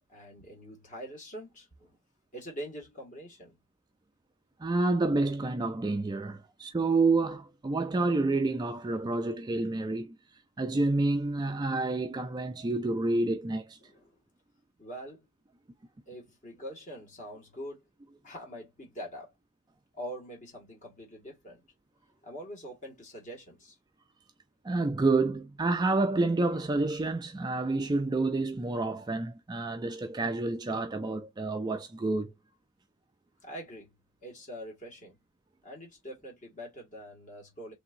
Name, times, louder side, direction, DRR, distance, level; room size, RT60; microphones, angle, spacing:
voice 1, 0.1-2.0 2.3-3.6 13.8-14.2 14.8-15.3 16.1-17.8 18.2-19.3 19.9-21.6 22.2-23.8 33.4-33.9 34.2-35.2 35.6-37.7, equal, 35° left, 1.6 m, -44 dB
voice 2, 4.6-10.2 10.6-13.8 24.6-32.3, right 3 dB, 20° right, 0.3 m, -29 dB
3.4 x 2.8 x 2.5 m
head